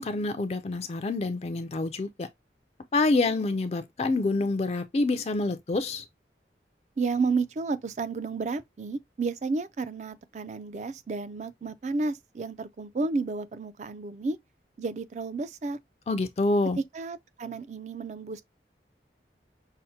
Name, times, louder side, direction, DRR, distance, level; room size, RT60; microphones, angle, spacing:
voice 1, 0.0-2.3 2.9-6.0 16.1-16.8, left 3 dB, 35° left, 0.4 m, -27 dB
voice 2, 7.0-14.4 14.8-15.8 16.8-18.4, right 4 dB, 40° right, 0.3 m, -31 dB
5.6 x 2.1 x 2.7 m
head